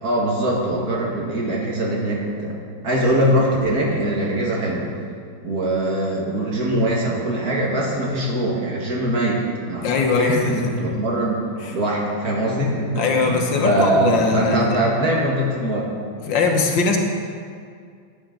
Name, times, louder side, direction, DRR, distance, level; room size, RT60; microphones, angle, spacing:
voice 1, 0.0-4.9 5.4-11.5 11.7-15.9, right 1 dB, 50° right, -3 dB, 2.2 m, -22 dB
voice 2, 9.8-10.8 11.6-11.7 13.0-14.8 16.3-17.0, left 4 dB, 75° left, 2 dB, 1.8 m, -21 dB
13.5 x 9.3 x 3.9 m, 2.2 s
omnidirectional pair, 2.1 m